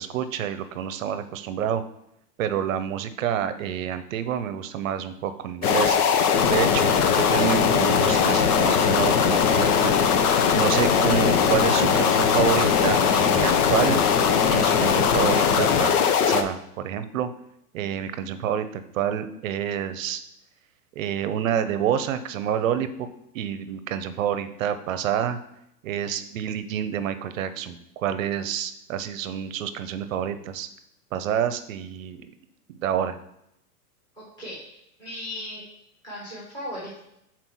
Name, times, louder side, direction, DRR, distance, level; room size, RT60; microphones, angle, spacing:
voice 1, 0.0-1.8 2.4-6.0 6.4-6.9 7.3-9.9 10.6-14.0 14.5-15.9 16.2-17.3 17.7-20.2 21.0-22.9 23.3-25.4 25.8-30.7 31.1-32.2 32.7-33.2, right 9 dB, 55° right, 11 dB, 0.7 m, -28 dB
sound 1, 5.6-16.4, left 7 dB, 70° left, 0.9 m, -20 dB
voice 2, 34.1-35.6 36.0-37.2, left 1 dB, 10° left, -6 dB, 1.6 m, -37 dB
5.7 x 4.4 x 6.2 m, 0.80 s
supercardioid pair, 170°, 47 cm